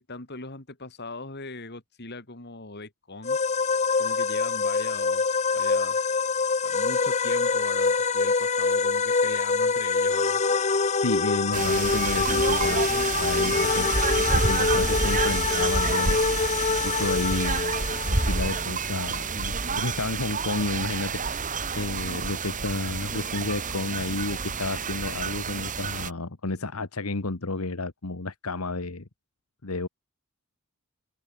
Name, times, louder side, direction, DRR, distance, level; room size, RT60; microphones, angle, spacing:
voice 1, 0.0-3.4 4.0-6.0 6.6-10.4, left 3 dB, 50° left, 3.1 m, -40 dB
sound 1, 3.2-18.6, left 4 dB, 30° left, 0.8 m, -25 dB
voice 2, 11.0-16.2 16.8-17.8 18.0-21.4 21.7-29.1 29.6-29.9, left 2 dB, 90° left, 1.5 m, -31 dB
sound 2, 11.5-26.1, right 4 dB, 35° right, 2.3 m, -29 dB
head